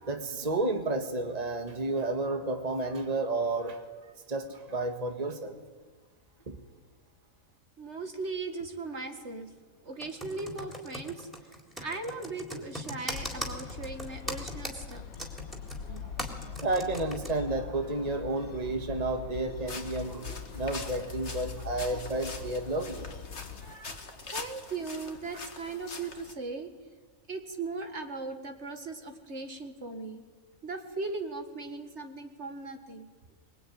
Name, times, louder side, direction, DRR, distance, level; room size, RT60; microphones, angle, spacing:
voice 1, 0.0-3.8 4.3-5.6 6.5-6.6 15.9-23.1 23.6-24.0 25.3-25.4, right 2 dB, 30° right, 5 dB, 1.8 m, -32 dB
voice 2, 7.8-9.5 9.8-11.5 11.8-15.0 24.3-26.7 27.3-30.2 30.6-33.1, right 3 dB, 55° right, 6 dB, 2.1 m, -38 dB
Computer keyboard, 10.0-17.3, equal, ahead, 3.7 m, -39 dB
sound 1, 13.1-23.8, left 7 dB, 80° left, 1.5 m, -42 dB
sound 2, 19.7-26.3, left 3 dB, 50° left, 2.2 m, -44 dB
23.5 x 22.5 x 9.4 m, 1.3 s
omnidirectional pair, 1.4 m